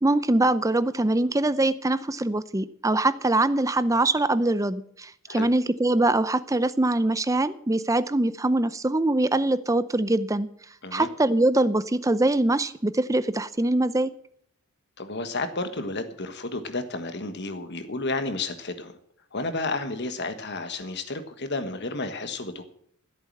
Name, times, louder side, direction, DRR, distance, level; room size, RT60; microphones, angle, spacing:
voice 1, 0.0-10.5 10.9-14.1, right 2 dB, 15° right, 14 dB, 0.6 m, -23 dB
voice 2, 15.0-18.9 19.3-22.7, left 2 dB, 50° left, 8 dB, 1.5 m, -31 dB
14.0 x 8.4 x 7.6 m, 0.65 s
head